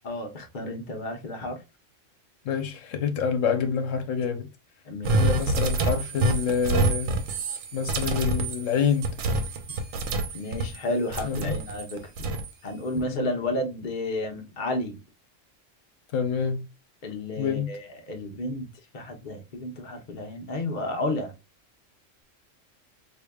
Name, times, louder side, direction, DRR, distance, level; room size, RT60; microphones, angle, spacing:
voice 1, 0.0-1.6 4.8-5.3 10.3-12.3 12.6-15.0 17.0-18.7 18.9-21.3, left 1 dB, 45° left, 0.9 m, -32 dB
voice 2, 2.4-4.5 5.2-7.2 7.7-9.2 11.2-11.6 13.1-13.3 16.1-16.7 17.4-17.7, left 6 dB, 80° left, 1.0 m, -27 dB
sound 1, 5.0-10.8 11.1-12.5, right 2 dB, 85° right, 1.0 m, -27 dB
4.8 x 2.7 x 2.3 m
omnidirectional pair, 1.3 m